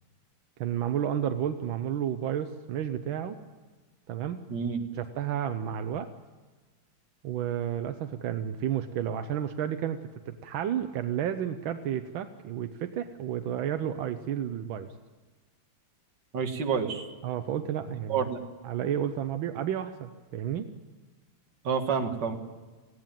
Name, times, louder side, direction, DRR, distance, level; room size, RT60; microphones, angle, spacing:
voice 1, 0.6-3.4 4.1-4.5 4.9-6.1 7.2-14.9 17.2-18.3 18.6-20.7, right 9 dB, 85° right, 8 dB, 1.6 m, -31 dB
voice 2, 4.5-4.8 16.3-17.1 18.1-18.4 21.6-22.4, right 6 dB, 65° right, 5 dB, 2.2 m, -28 dB
19.0 x 16.0 x 9.0 m, 1.3 s
omnidirectional pair, 2.1 m